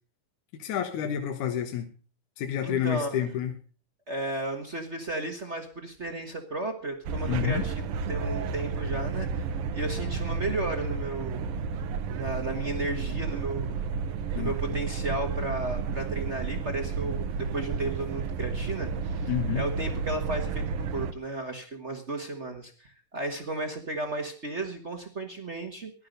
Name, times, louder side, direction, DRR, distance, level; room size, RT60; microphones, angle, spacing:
voice 1, 0.6-1.9 2.4-3.5 7.2-7.6 14.3-14.5 19.3-19.6, left 9 dB, 70° left, 5 dB, 2.6 m, -29 dB
voice 2, 2.6-3.3 4.1-9.5 9.7-11.6 12.1-13.8 14.3-25.9, right 2 dB, 45° right, 5 dB, 0.8 m, -34 dB
sound 1, 7.0-21.1, right 5 dB, 70° right, 1.4 m, -32 dB
16.5 x 11.5 x 5.2 m, 0.39 s
omnidirectional pair, 3.7 m